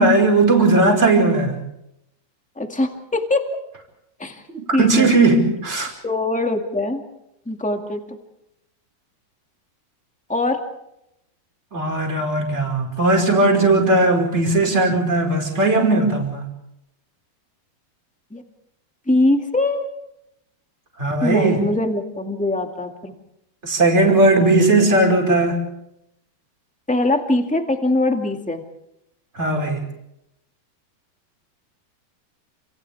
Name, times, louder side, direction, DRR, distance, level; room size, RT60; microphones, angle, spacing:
voice 1, 0.0-1.6 4.5-5.9 11.7-16.5 21.0-21.6 23.6-25.6 29.3-29.8, right 2 dB, 15° right, 2 dB, 5.2 m, -17 dB
voice 2, 2.5-3.4 4.2-4.4 4.7-5.1 6.0-7.0 7.4-8.0 10.3-10.6 18.3-18.4 19.1-19.9 21.2-23.1 26.9-28.6, left 2 dB, 5° left, 4 dB, 0.8 m, -22 dB
29.5 x 28.5 x 3.6 m, 0.82 s
omnidirectional pair, 4.6 m